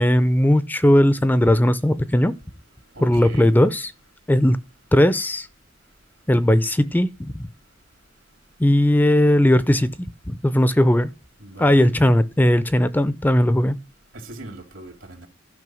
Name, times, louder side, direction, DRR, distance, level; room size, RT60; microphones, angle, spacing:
voice 1, 0.0-2.4 3.0-3.9 4.3-4.6 4.9-5.5 6.3-7.3 8.6-10.0 10.3-11.1 11.6-13.8, left 1 dB, 10° left, 0.4 m, -18 dB
voice 2, 2.9-3.5 11.4-11.9 14.1-15.3, right 1 dB, 80° right, 2.5 m, -39 dB
12.5 x 5.3 x 6.2 m
head